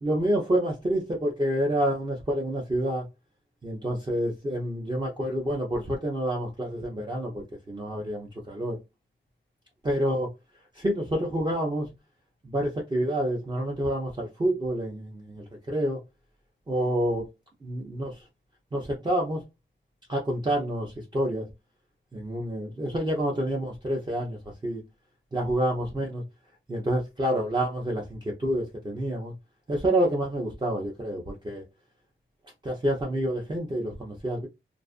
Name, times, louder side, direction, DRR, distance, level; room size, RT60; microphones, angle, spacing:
voice 1, 0.0-3.1 3.6-8.8 9.8-10.3 10.7-11.9 12.4-16.0 16.7-17.3 17.6-18.3 18.7-19.4 20.1-21.5 22.1-24.8 25.3-26.2 26.7-29.3 29.7-31.7 32.6-34.5, right 1 dB, 20° right, 0.5 m, -28 dB
2.4 x 2.4 x 2.4 m
wide cardioid pair, 120°, 21 cm